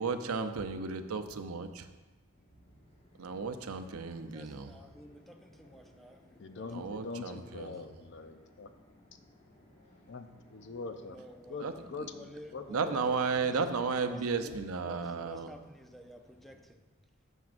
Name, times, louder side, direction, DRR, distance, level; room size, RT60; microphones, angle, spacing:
voice 1, 0.0-1.9 3.2-4.8 6.7-7.9 11.6-11.7 12.0-12.1 12.7-15.5, right 4 dB, 90° right, 8 dB, 0.6 m, -34 dB
sound 1, 2.3-16.6, left 1 dB, 30° left, 1.5 m, -61 dB
voice 2, 4.2-6.9 7.1-7.7 11.1-11.7 12.1-13.6 14.0-16.8, equal, ahead, 4 dB, 0.5 m, -52 dB
voice 3, 6.4-8.7 9.1-9.2 10.1-11.2 11.5-12.8 13.1-13.5, left 4 dB, 55° left, 8 dB, 0.6 m, -43 dB
12.0 x 7.2 x 2.5 m, 1.2 s
head